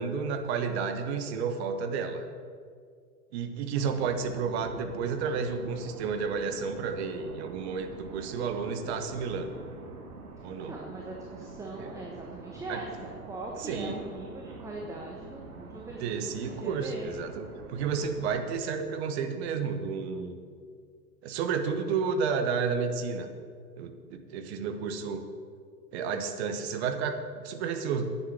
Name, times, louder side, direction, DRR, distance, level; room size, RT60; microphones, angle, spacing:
voice 1, 0.0-2.2 3.3-9.6 10.4-10.8 11.8-11.9 12.7-12.8 13.6-14.0 16.0-20.3 21.2-23.3 23.8-25.2 25.9-28.0, right 5 dB, 40° right, 7 dB, 1.3 m, -31 dB
sound 1, 3.7-18.6, right 4 dB, 60° right, 1.9 m, -46 dB
voice 2, 10.6-17.1, right 2 dB, 5° right, -2 dB, 1.1 m, -41 dB
9.8 x 8.1 x 7.3 m, 2.1 s
figure-of-eight pair, 100°, 48 cm